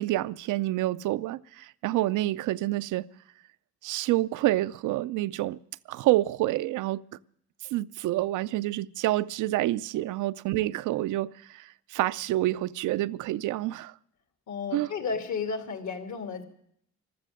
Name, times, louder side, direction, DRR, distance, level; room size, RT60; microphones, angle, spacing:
voice 1, 0.0-3.1 3.8-5.6 5.9-7.0 7.7-13.9 14.7-14.9, right 16 dB, 85° right, 0.5 m, -28 dB
voice 2, 14.5-16.4, left 5 dB, 70° left, 2.6 m, -33 dB
15.0 x 13.0 x 6.4 m
cardioid pair, 90°, 30 cm